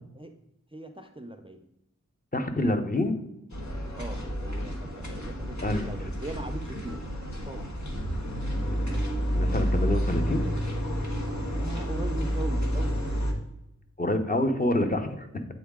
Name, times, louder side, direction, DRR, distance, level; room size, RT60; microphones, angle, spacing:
voice 1, 0.7-1.6 4.0-7.0 7.4-7.7 11.6-13.1, right 2 dB, 15° right, 6 dB, 0.5 m, -40 dB
voice 2, 2.3-3.1 5.6-5.9 8.6-8.9 9.3-10.4 14.0-15.5, left 1 dB, 30° left, 6 dB, 0.8 m, -27 dB
sound 1, 3.5-13.3, equal, 65° left, 1.3 m, -30 dB
8.3 x 4.0 x 3.6 m, 0.86 s
wide cardioid pair, 60°, 31 cm